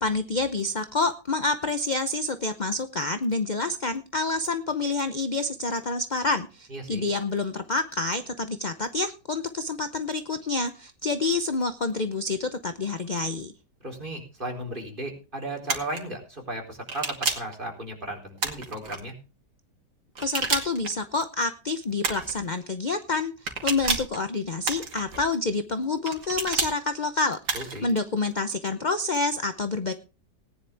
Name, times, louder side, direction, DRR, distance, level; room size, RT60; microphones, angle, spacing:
voice 1, 0.0-13.5 20.2-29.9, left 3 dB, 40° left, 9 dB, 0.7 m, -28 dB
voice 2, 6.7-7.0 13.8-19.1 27.5-27.9, right 1 dB, 30° right, 1 dB, 4.4 m, -35 dB
sound 1, 15.7-16.0 16.9-17.5 18.4-19.0 20.2-20.9 22.0-22.4 23.5-24.2 24.6-25.2 26.1-26.7 27.5-27.9, right 4 dB, 85° right, 3.0 m, -29 dB
19.0 x 10.5 x 3.5 m, 0.32 s
omnidirectional pair, 1.8 m